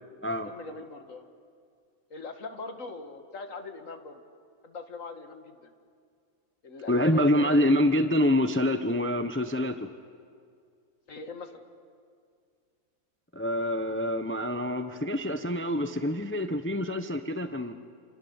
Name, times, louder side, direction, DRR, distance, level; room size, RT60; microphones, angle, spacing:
voice 1, 0.5-1.3 2.1-4.2 4.6-5.7 6.6-7.7 11.1-11.6, left 3 dB, 65° left, 6 dB, 2.3 m, -41 dB
voice 2, 6.9-9.8 13.3-17.7, left 1 dB, 10° left, 8 dB, 0.8 m, -26 dB
29.5 x 28.0 x 7.2 m, 2.2 s
omnidirectional pair, 1.5 m